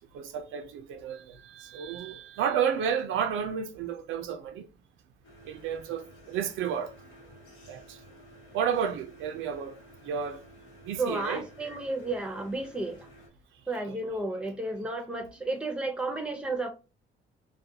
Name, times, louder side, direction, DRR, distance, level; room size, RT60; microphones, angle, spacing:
voice 1, 0.1-4.7 5.5-6.9 7.7-7.8 8.5-9.7 10.1-10.4 10.9-11.4 13.9-14.0, right 8 dB, 85° right, 0.4 m, -31 dB
sound 1, 5.2-13.3, equal, 85° left, 1.1 m, -53 dB
voice 2, 11.0-13.0 13.7-16.7, right 2 dB, 5° right, 0.6 m, -32 dB
2.4 x 2.2 x 2.6 m
cardioid pair, 90°, 20 cm